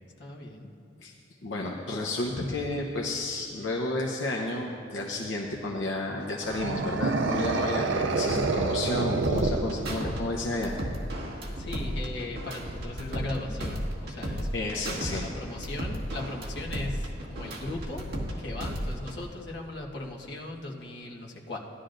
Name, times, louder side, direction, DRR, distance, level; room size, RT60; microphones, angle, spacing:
voice 1, 0.2-0.7 11.4-18.0 18.4-21.6, left 2 dB, 65° left, -2 dB, 1.4 m, -38 dB
voice 2, 1.4-10.7 14.5-15.3, left 2 dB, 90° left, -1 dB, 0.8 m, -31 dB
sound 1, 6.4-10.3, right 3 dB, 85° right, 0.6 m, -28 dB
sound 2, 9.2-10.2 10.5-13.3 13.6-15.2 15.5-18.3 18.6-19.2, equal, 60° right, 1.8 m, -34 dB
17.0 x 11.0 x 2.6 m, 2.6 s
head